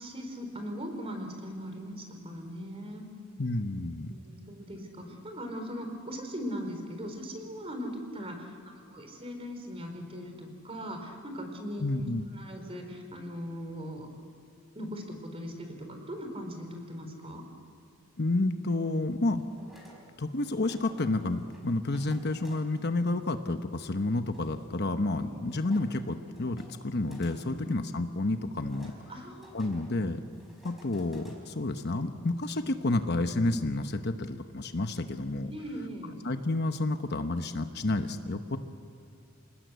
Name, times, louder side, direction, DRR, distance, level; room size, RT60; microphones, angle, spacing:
voice 1, 0.0-3.1 4.1-12.0 12.3-14.1 14.7-17.4 25.2-25.5 27.6-27.7 29.1-29.8 35.5-36.2, equal, 25° right, 5 dB, 4.2 m, -40 dB
voice 2, 3.4-4.1 11.8-12.2 18.2-19.4 20.2-28.9 29.5-30.2 30.6-35.5 36.2-38.6, left 2 dB, 50° left, 8 dB, 1.0 m, -30 dB
sound 1, 19.0-34.0, equal, ahead, 4.6 m, -58 dB
28.0 x 19.0 x 8.2 m, 2.5 s
head